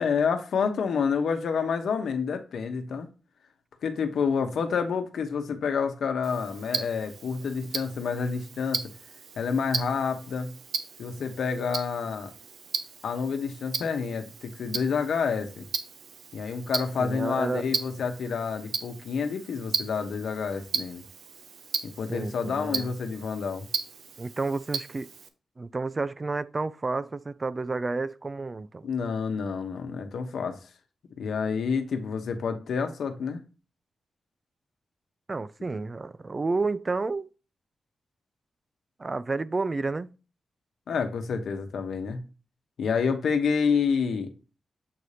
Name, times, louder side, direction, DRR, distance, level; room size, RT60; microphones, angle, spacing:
voice 1, 0.0-3.1 3.8-8.9 9.4-10.5 11.0-12.3 13.0-15.6 16.3-21.0 21.8-23.7 28.8-30.6 31.2-33.4 40.9-42.2 42.8-44.3, left 6 dB, 90° left, 0.9 m, -28 dB
Tick-tock, 6.2-25.3, right 6 dB, 80° right, 0.7 m, -37 dB
voice 2, 17.0-17.7 22.1-22.9 24.2-25.1 25.6-28.9 35.3-37.3 39.0-40.1, right 3 dB, 30° right, 0.3 m, -30 dB
7.7 x 2.8 x 4.9 m
wide cardioid pair, 125°, 0 cm